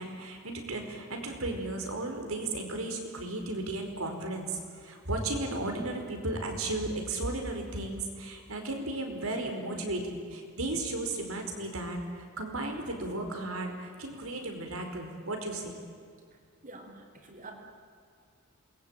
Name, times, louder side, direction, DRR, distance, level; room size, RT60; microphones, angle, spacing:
voice 1, 0.0-15.8, right 2 dB, 80° right, 4 dB, 4.9 m, -35 dB
voice 2, 16.6-17.5, right 2 dB, 40° right, 3 dB, 4.6 m, -47 dB
27.5 x 21.5 x 9.0 m, 2.3 s
head